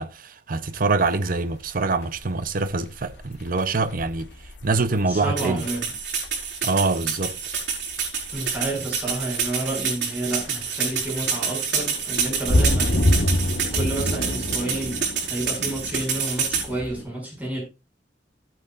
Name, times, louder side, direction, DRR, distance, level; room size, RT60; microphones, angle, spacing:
voice 1, 0.0-4.3 4.6-5.7 6.6-7.4, right 3 dB, 50° right, 0.7 m, -24 dB
sound 1, 0.6-17.0, left 1 dB, 70° left, 1.3 m, -29 dB
voice 2, 5.1-5.8 8.3-13.3 13.7-17.6, right 2 dB, 10° right, 6.3 m, -30 dB
sound 2, 5.4-16.7, right 6 dB, 70° right, 4.9 m, -27 dB
16.0 x 8.9 x 2.5 m
head